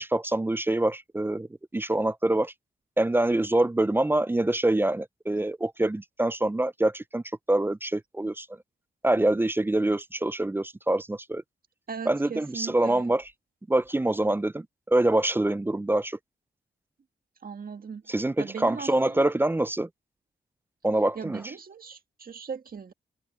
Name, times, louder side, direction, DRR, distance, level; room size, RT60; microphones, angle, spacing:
voice 1, 0.0-1.5 1.7-2.5 3.0-8.5 9.0-11.4 12.0-13.3 13.7-16.2 18.1-19.9 20.8-21.5, right 1 dB, 10° right, 0.4 m, -25 dB
voice 2, 11.9-13.1 17.4-19.3 21.2-22.9, right 6 dB, 50° right, 1.8 m, -39 dB
cardioid pair, 85°, 19 cm